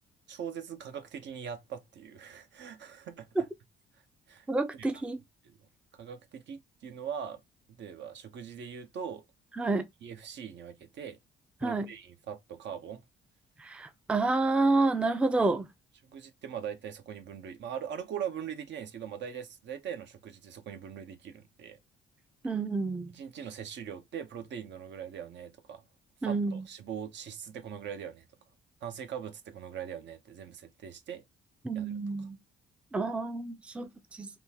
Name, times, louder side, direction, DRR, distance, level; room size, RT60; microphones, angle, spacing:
voice 1, 0.3-3.5 4.3-4.5 4.7-4.9 5.4-5.6 5.9-7.4 7.8-9.2 10.0-11.2 11.6-13.0 16.1-21.8 23.1-25.8 26.2-28.2 28.8-31.2 31.7-32.3, right 8 dB, 65° right, 0.7 m, -41 dB
voice 2, 4.5-5.2 9.6-9.9 11.6-11.9 13.6-15.7 22.4-23.1 26.2-26.6 31.6-32.4 32.9-34.3, right 3 dB, 5° right, 0.4 m, -29 dB
3.6 x 2.4 x 2.8 m
cardioid pair, 90°, 20 cm